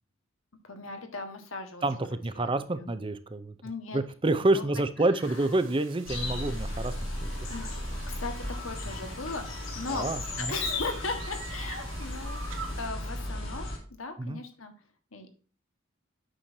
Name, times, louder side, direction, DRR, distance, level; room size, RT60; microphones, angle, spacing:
voice 1, 0.7-1.9 2.4-2.9 3.6-4.0 4.5-4.6 5.3-5.4 7.5-7.7 8.1-10.1 10.4-14.7 15.1-15.3, left 3 dB, 90° left, 6 dB, 1.5 m, -38 dB
voice 2, 1.8-3.5 3.9-6.9 7.2-7.3 9.9-10.6 14.2-14.4, right 2 dB, 25° right, 11 dB, 0.6 m, -28 dB
sound 1, 5.2-12.9, right 5 dB, 75° right, 1.8 m, -47 dB
sound 2, 6.1-13.8, left 1 dB, 75° left, 3.2 m, -35 dB
8.8 x 6.3 x 2.7 m, 0.40 s
head